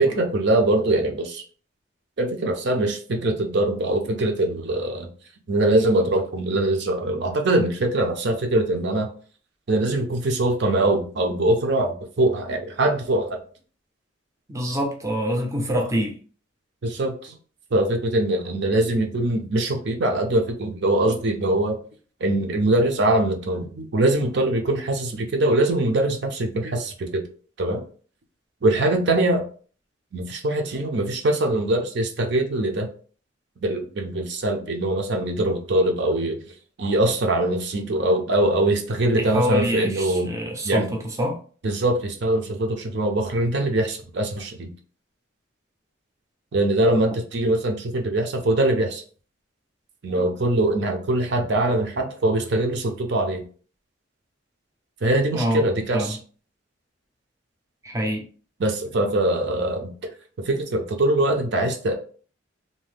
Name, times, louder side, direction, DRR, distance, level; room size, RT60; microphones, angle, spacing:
voice 1, 0.0-1.4 2.2-5.1 5.5-9.1 9.7-13.4 16.8-17.3 17.7-21.8 22.2-27.2 27.6-27.8 28.6-29.4 30.1-32.9 33.6-36.4 36.8-40.3 40.6-40.9 41.6-44.7 46.5-49.0 50.0-53.4 55.0-56.2 58.6-59.9 60.5-61.9, right 1 dB, 60° right, 0.5 m, -22 dB
voice 2, 14.5-16.2 39.2-41.4 55.3-55.7 55.9-56.2 57.8-58.3, equal, 15° right, 0.5 m, -25 dB
2.7 x 2.1 x 3.3 m
head